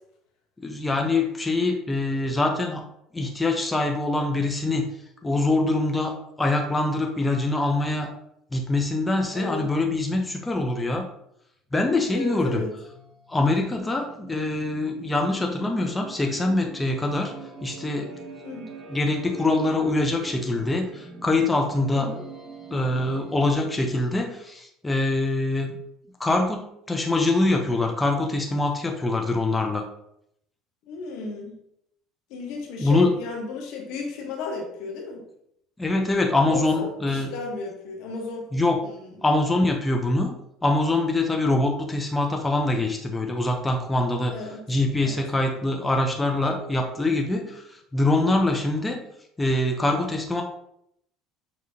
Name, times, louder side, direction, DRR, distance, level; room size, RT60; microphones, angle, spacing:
voice 1, 0.6-2.8 3.1-4.9 5.2-8.1 8.5-11.1 11.7-12.6 13.3-17.3 17.6-18.1 18.9-22.1 22.7-25.7 26.2-29.8 32.8-33.1 35.8-37.3 38.5-38.8 39.2-40.3 40.6-44.4 44.7-49.0 49.4-50.4, left 2 dB, 15° left, 2 dB, 0.7 m, -24 dB
voice 2, 9.3-9.7 12.1-12.7 18.4-18.7 21.9-22.2 30.8-31.6 32.3-35.2 36.5-38.5 38.8-39.1 44.3-44.6 45.0-45.2, left 3 dB, 70° left, 1 dB, 1.1 m, -34 dB
sound 1, 12.8-24.2, right 4 dB, 35° right, 1.1 m, -43 dB
5.7 x 3.1 x 2.8 m, 0.75 s
supercardioid pair, 80°, 0 cm